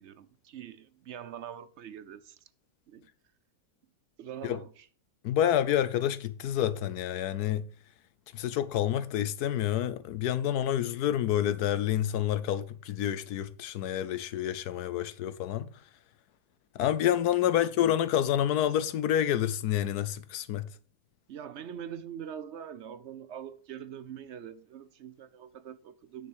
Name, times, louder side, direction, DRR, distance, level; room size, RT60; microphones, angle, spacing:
voice 1, 0.0-2.4 2.9-3.1 4.2-4.9 17.5-17.6 21.3-26.3, right 9 dB, 65° right, 0.7 m, -43 dB
voice 2, 5.2-7.7 8.3-15.7 16.7-20.7, left 11 dB, 75° left, 1.1 m, -28 dB
9.5 x 6.2 x 4.8 m
omnidirectional pair, 1.7 m